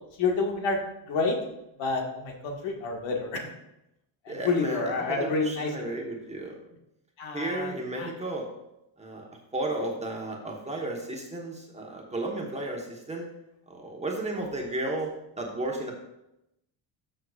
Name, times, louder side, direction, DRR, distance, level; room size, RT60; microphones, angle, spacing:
voice 1, 0.2-0.8 1.1-1.4 1.8-3.5 4.3-5.9 7.2-8.1, left 3 dB, 75° left, 1 dB, 1.8 m, -29 dB
voice 2, 4.3-6.6 7.3-8.5 9.0-9.3 9.5-13.3 13.7-15.9, right 2 dB, 15° right, 0 dB, 1.2 m, -33 dB
12.5 x 6.6 x 2.4 m, 0.87 s
cardioid pair, 145°, 45 cm